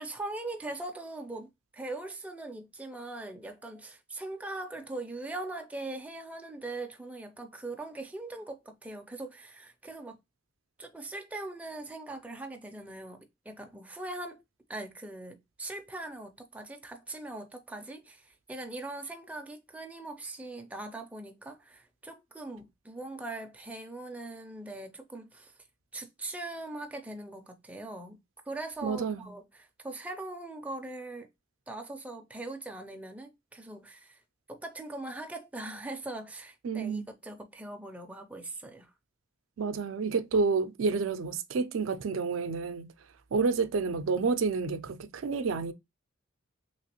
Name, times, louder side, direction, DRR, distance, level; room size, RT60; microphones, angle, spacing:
voice 1, 0.0-10.2 10.8-14.4 14.7-25.5 25.9-28.2 28.5-31.3 31.7-34.2 34.5-38.9, right 2 dB, 5° right, 0.4 m, -41 dB
voice 2, 28.8-29.3 36.6-37.1 39.6-42.9 43.3-45.7, right 4 dB, 75° right, 0.4 m, -29 dB
3.1 x 2.9 x 2.9 m
head